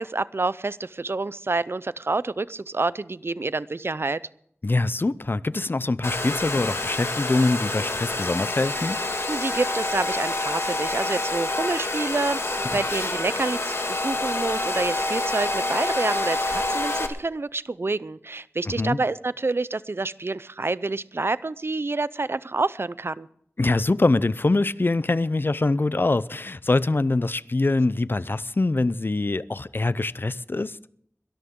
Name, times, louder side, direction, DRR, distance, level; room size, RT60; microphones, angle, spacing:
voice 1, 0.0-4.2 9.3-23.3, right 3 dB, 60° right, 0.5 m, -28 dB
voice 2, 4.6-9.0 12.7-12.8 18.7-19.0 23.6-30.8, left 2 dB, 50° left, 0.5 m, -24 dB
Domestic sounds home sounds, 6.0-17.1, left 2 dB, 70° left, 1.8 m, -27 dB
22.0 x 13.0 x 3.7 m
wide cardioid pair, 50°, 5 cm